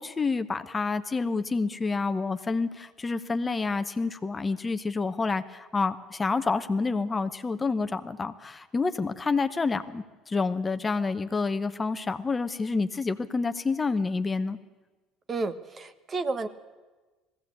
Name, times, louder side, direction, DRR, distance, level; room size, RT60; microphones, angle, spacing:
voice 1, 0.0-14.6, left 4 dB, 25° left, 10 dB, 0.9 m, -28 dB
voice 2, 15.3-16.5, right 3 dB, 30° right, 11 dB, 1.2 m, -31 dB
19.5 x 16.0 x 8.5 m, 1.2 s
supercardioid pair, 95°, 0 cm